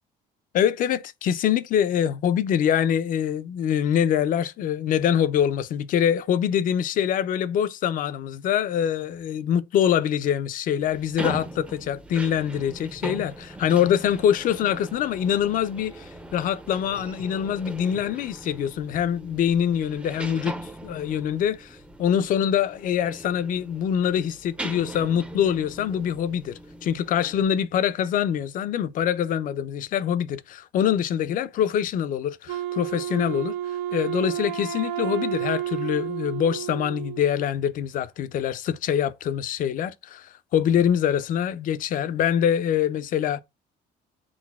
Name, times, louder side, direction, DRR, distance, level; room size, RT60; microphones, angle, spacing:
voice 1, 0.5-20.5 20.8-33.6 33.9-43.4, left 9 dB, 55° left, 0.4 m, -24 dB
sound 1, 10.8-27.4, right 1 dB, 5° right, 0.4 m, -40 dB
Wind instrument woodwind instrument, 32.5-37.5, right 11 dB, 85° right, 0.5 m, -31 dB
5.9 x 2.0 x 2.3 m
cardioid pair, 110°, 17 cm